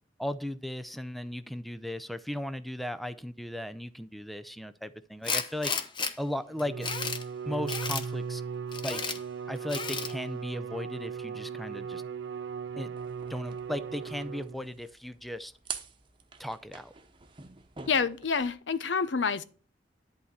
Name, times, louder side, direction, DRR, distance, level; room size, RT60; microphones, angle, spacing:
voice 1, 0.2-5.7 6.2-6.9 7.5-8.4 8.8-9.2 9.5-12.0 12.8-13.0 13.3-15.5 16.4-16.9, left 1 dB, ahead, 0.5 m, -36 dB
Tools, 5.2-6.1 6.6-7.2 7.7-8.1 8.7-9.2 9.7-10.1, left 5 dB, 25° left, 0.9 m, -32 dB
Bowed string instrument, 6.5-14.8, right 6 dB, 75° right, 0.5 m, -38 dB
sound 1, 13.0-18.6, right 6 dB, 30° right, 1.0 m, -46 dB
voice 2, 17.9-19.4, left 5 dB, 85° left, 0.7 m, -28 dB
11.0 x 4.2 x 7.9 m
head